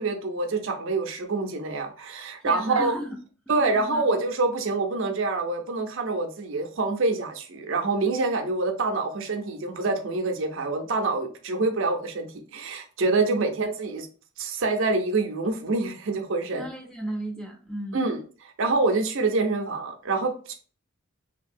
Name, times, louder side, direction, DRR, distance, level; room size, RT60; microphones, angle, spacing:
voice 1, 0.0-2.9 3.5-14.1 14.4-16.7 17.9-20.5, right 3 dB, 65° right, 0.5 m, -26 dB
voice 2, 2.4-3.2 3.5-4.1 13.2-13.4 16.5-18.0, right 1 dB, 5° left, 0.4 m, -35 dB
2.8 x 2.6 x 2.5 m
head